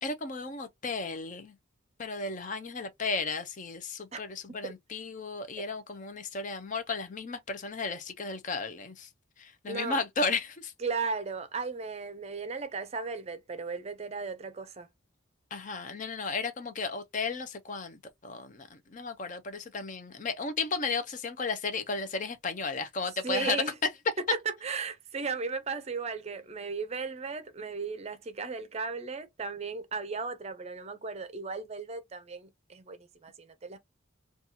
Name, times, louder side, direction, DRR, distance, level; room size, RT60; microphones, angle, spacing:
voice 1, 0.0-1.5 2.0-9.1 9.4-10.7 15.5-23.6, left 4 dB, 40° left, 0.5 m, -34 dB
voice 2, 9.7-10.0 10.8-14.9 23.2-23.7 24.3-33.8, right 4 dB, 30° right, 0.5 m, -36 dB
4.1 x 2.3 x 2.7 m
head